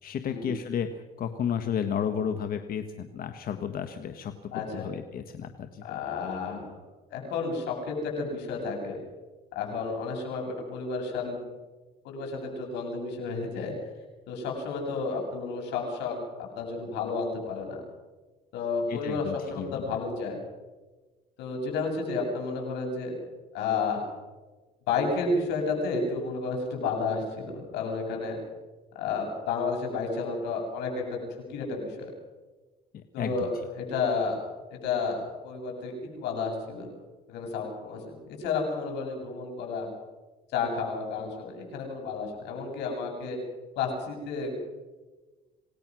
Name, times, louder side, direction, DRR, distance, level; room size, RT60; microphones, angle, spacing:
voice 1, 0.0-6.0 18.9-19.8 32.9-33.5, left 8 dB, 60° left, 8 dB, 1.5 m, -33 dB
voice 2, 4.5-4.9 5.8-6.7 7.1-9.0 9.5-11.4 12.0-13.7 14.3-16.2 16.6-17.8 18.5-20.4 21.4-23.1 23.5-24.0 24.9-28.4 29.0-31.2 31.5-32.1 33.1-34.4 34.7-36.9 37.3-39.9 40.5-43.4 43.8-44.6, left 4 dB, 85° left, 1 dB, 7.5 m, -31 dB
27.5 x 18.5 x 6.2 m, 1.3 s
cardioid pair, 110°, 17 cm